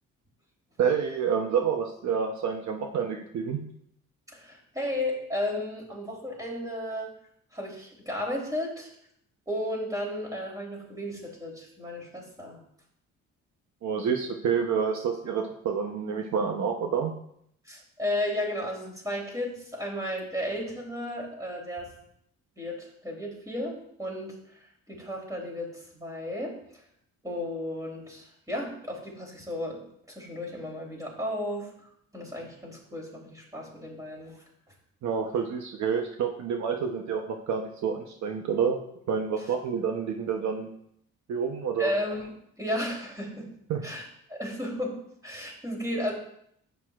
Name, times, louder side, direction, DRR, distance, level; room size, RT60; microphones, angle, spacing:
voice 1, 0.8-3.6 13.8-17.1 35.0-38.8 39.1-40.7 41.3-41.9 43.7-43.8, right 6 dB, 70° right, 3 dB, 0.9 m, -28 dB
voice 2, 4.3-7.1 7.5-8.9 9.5-12.6 17.7-21.9 22.6-24.4 24.9-26.6 27.2-29.8 30.1-31.9 32.1-34.4 41.8-42.3 42.6-43.5 43.8-45.0 45.2-46.1, left 1 dB, 10° right, -2 dB, 3.3 m, -34 dB
11.0 x 8.2 x 2.4 m, 0.70 s
cardioid pair, 90°, 30 cm